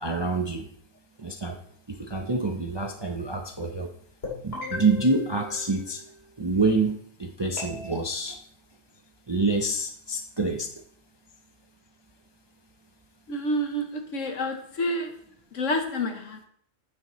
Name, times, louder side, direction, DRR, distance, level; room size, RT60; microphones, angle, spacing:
voice 1, 0.0-0.7 1.2-1.6 1.9-3.9 4.4-6.0 6.4-8.4 9.3-10.7, right 3 dB, 25° right, 3 dB, 0.6 m, -27 dB
sound 1, 4.2-6.4 7.6-7.9, left 2 dB, 45° left, 3.2 m, -37 dB
voice 2, 13.3-15.2 15.5-16.5, left 1 dB, 65° left, 5 dB, 1.4 m, -29 dB
9.5 x 8.7 x 3.1 m, 0.63 s
omnidirectional pair, 1.4 m